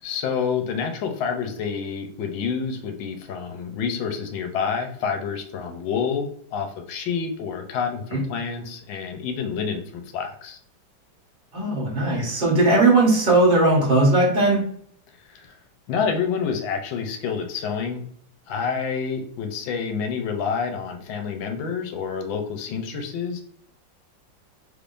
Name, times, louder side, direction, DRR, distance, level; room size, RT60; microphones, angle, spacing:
voice 1, 0.0-10.6 15.3-15.5 15.9-18.0 18.5-23.4, left 6 dB, 80° left, 5 dB, 1.4 m, -28 dB
voice 2, 11.5-14.7, right 2 dB, 30° right, -3 dB, 1.1 m, -18 dB
3.6 x 3.3 x 2.5 m, 0.62 s
omnidirectional pair, 2.1 m